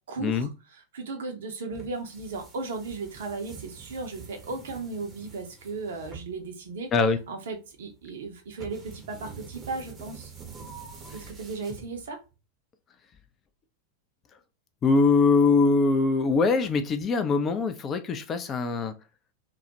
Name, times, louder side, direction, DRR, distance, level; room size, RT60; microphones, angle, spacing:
voice 1, 0.1-6.9 7.3-10.3 11.1-12.2, right 3 dB, 60° right, 0.5 m, -36 dB
sound 1, 1.7-12.3, right 5 dB, 20° right, 0.6 m, -46 dB
voice 2, 14.8-18.9, left 4 dB, 25° left, 0.3 m, -22 dB
2.2 x 2.1 x 2.7 m
figure-of-eight pair, 90°, 0 cm